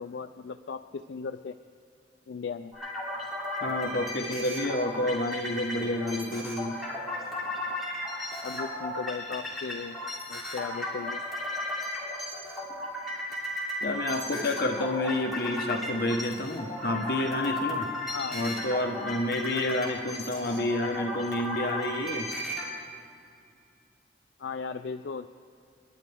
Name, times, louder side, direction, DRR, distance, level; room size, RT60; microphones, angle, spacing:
voice 1, 0.0-1.6 2.3-2.7 8.4-10.0 10.3-11.2 18.1-18.4 19.5-19.8 24.4-25.3, left 5 dB, 75° left, 8 dB, 0.4 m, -36 dB
sound 1, 2.7-22.7, left 1 dB, ahead, 3.0 m, -35 dB
voice 2, 3.6-6.8 13.8-17.9 18.3-22.3, left 1 dB, 55° left, 3 dB, 1.1 m, -29 dB
30.0 x 11.0 x 3.5 m, 2.4 s
head